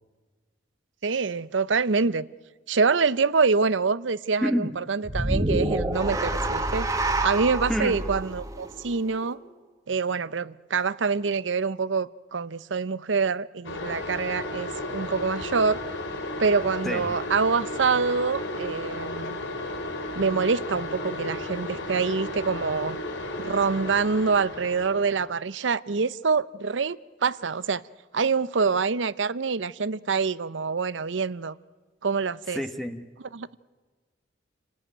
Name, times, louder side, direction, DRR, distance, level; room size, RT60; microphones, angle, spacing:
voice 1, 1.0-2.2 2.7-6.9 7.2-9.4 9.9-15.8 16.4-19.4 20.1-23.0 23.4-27.8 28.1-31.5 32.0-32.6 33.3-33.5, right 5 dB, 85° right, 0.7 m, -26 dB
voice 2, 4.4-4.8 7.7-8.0 16.8-17.2 32.5-33.1, equal, ahead, 1.2 m, -28 dB
sound 1, 5.0-9.4, right 1 dB, 20° right, 1.6 m, -28 dB
sound 2, 13.6-25.3, left 2 dB, 85° left, 3.1 m, -34 dB
29.0 x 18.5 x 9.2 m
head